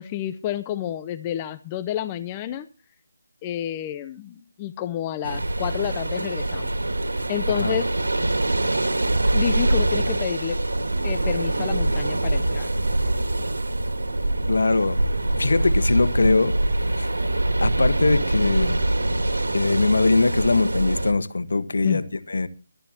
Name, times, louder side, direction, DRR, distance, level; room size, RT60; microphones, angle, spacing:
voice 1, 0.0-2.7 3.4-6.7 7.3-7.9 9.3-10.6 11.0-12.7 21.8-22.0, left 11 dB, 20° left, 0.7 m, -29 dB
sound 1, 5.2-21.1, right 1 dB, 80° right, 2.2 m, -24 dB
voice 2, 7.5-7.8 14.5-15.0 15.4-16.5 17.0-17.1 17.6-18.8 19.5-22.5, left 3 dB, 70° left, 1.3 m, -21 dB
23.5 x 10.0 x 2.9 m
figure-of-eight pair, 160°, 0 cm